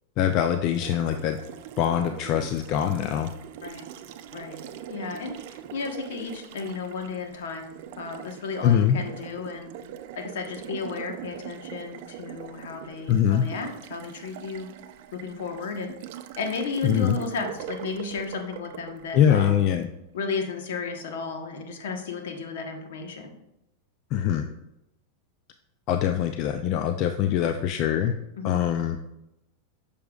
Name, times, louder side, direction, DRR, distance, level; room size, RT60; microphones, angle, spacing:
voice 1, 0.2-1.4 1.8-3.3 8.6-9.0 13.1-13.4 16.8-17.2 19.1-19.9 24.1-24.5 25.9-28.1 28.4-29.0, left 9 dB, 50° left, 7 dB, 0.4 m, -23 dB
Water tap faucet, 0.7-19.9, right 10 dB, 60° right, 0.5 m, -42 dB
voice 2, 4.9-9.7 10.1-14.7 15.1-16.0 16.4-19.6 20.1-23.3 28.4-28.6, left 4 dB, 75° left, 4 dB, 1.2 m, -33 dB
6.8 x 6.7 x 2.4 m, 0.87 s
hypercardioid pair, 105°, 0 cm